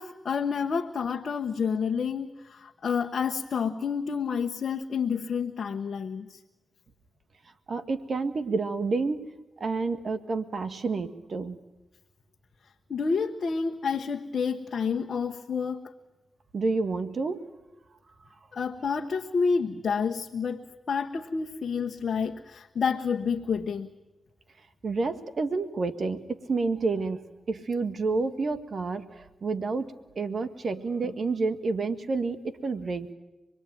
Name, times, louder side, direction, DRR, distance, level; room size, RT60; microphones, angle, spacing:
voice 1, 0.0-6.4 12.9-15.8 18.5-20.6 20.9-23.9, left 6 dB, 65° left, 3 dB, 1.2 m, -29 dB
voice 2, 7.7-9.3 9.6-11.6 16.5-17.4 24.8-33.1, right 3 dB, 60° right, 10 dB, 1.7 m, -29 dB
26.0 x 21.0 x 9.3 m, 1.0 s
supercardioid pair, 40°, 0 cm